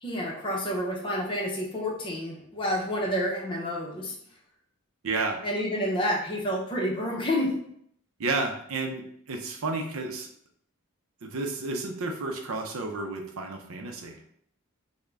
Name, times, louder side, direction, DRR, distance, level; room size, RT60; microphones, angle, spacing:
voice 1, 0.0-4.1 5.4-7.5, equal, 20° left, -2 dB, 0.6 m, -29 dB
voice 2, 5.0-5.4 8.2-9.0 9.3-10.3 11.2-14.2, right 3 dB, 70° right, 3 dB, 0.5 m, -31 dB
3.6 x 2.1 x 3.3 m, 0.67 s
head